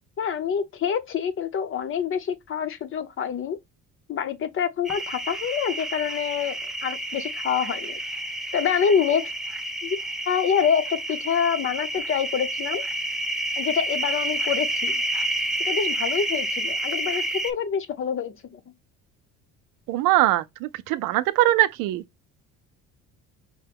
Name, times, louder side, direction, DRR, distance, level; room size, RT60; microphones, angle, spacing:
voice 1, 0.2-3.6 4.1-8.0 8.5-9.2 9.8-10.0 10.3-12.9 13.6-15.0 15.7-18.6, left 7 dB, 40° left, 0.7 m, -26 dB
sound 1, 4.8-17.5, right 1 dB, ahead, 0.4 m, -29 dB
voice 2, 19.9-22.0, right 15 dB, 85° right, 0.5 m, -22 dB
5.5 x 2.2 x 3.4 m
cardioid pair, 130°, 32 cm